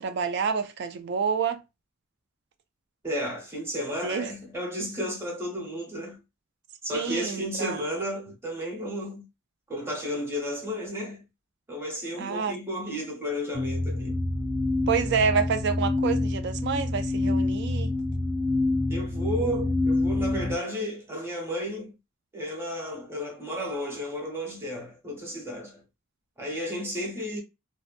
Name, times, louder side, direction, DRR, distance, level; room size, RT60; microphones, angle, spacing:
voice 1, 0.0-1.6 4.0-4.3 6.9-7.8 12.2-12.6 14.9-17.9, right 6 dB, 55° right, 0.3 m, -28 dB
voice 2, 3.0-6.2 6.8-9.3 9.7-11.2 11.7-14.2 18.9-21.9 22.3-25.8 26.4-27.4, equal, 10° right, 0.9 m, -33 dB
sound 1, 13.5-20.5, left 2 dB, 80° right, 1.1 m, -27 dB
2.7 x 2.1 x 2.4 m
head